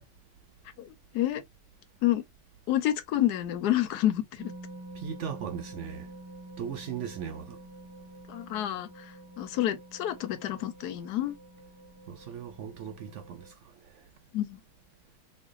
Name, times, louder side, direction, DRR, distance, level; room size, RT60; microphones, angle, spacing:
voice 1, 0.8-1.4 2.0-2.2 2.7-4.5 8.3-8.9 9.4-11.3 14.3-14.6, left 13 dB, 90° left, 1.2 m, -28 dB
sound 1, 4.4-13.5, right 1 dB, 20° right, 0.8 m, -48 dB
voice 2, 4.9-6.1 6.6-7.6 12.1-14.0, right 8 dB, 65° right, 0.8 m, -38 dB
3.2 x 2.2 x 3.6 m
omnidirectional pair, 1.6 m